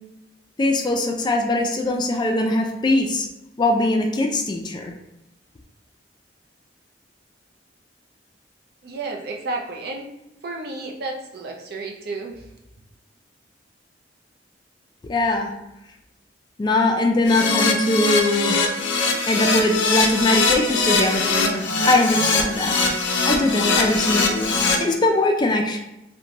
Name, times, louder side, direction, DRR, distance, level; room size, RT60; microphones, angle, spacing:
voice 1, 0.6-3.3 3.6-4.9 15.1-15.5 16.6-18.6 19.3-25.8, left 2 dB, 25° left, 2 dB, 0.3 m, -21 dB
voice 2, 8.8-10.1 10.4-12.5, right 3 dB, 60° right, 1 dB, 0.5 m, -32 dB
Keyboard (musical), 17.3-24.8, left 3 dB, 90° left, 0.5 m, -21 dB
2.8 x 2.2 x 2.6 m, 0.90 s
head